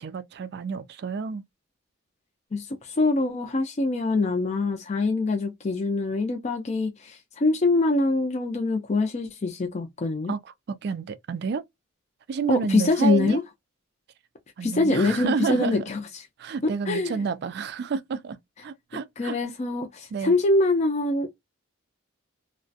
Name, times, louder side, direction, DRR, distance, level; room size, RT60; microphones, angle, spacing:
voice 1, 0.0-1.4 10.3-11.6 12.3-13.4 14.6-15.8 16.4-18.4 18.6-19.4 20.1-20.3, right 5 dB, 50° right, 0.3 m, -30 dB
voice 2, 2.5-10.3 12.5-13.4 14.6-16.0 16.6-17.1 19.2-21.3, left 2 dB, 30° left, 0.4 m, -24 dB
2.3 x 2.1 x 2.5 m
head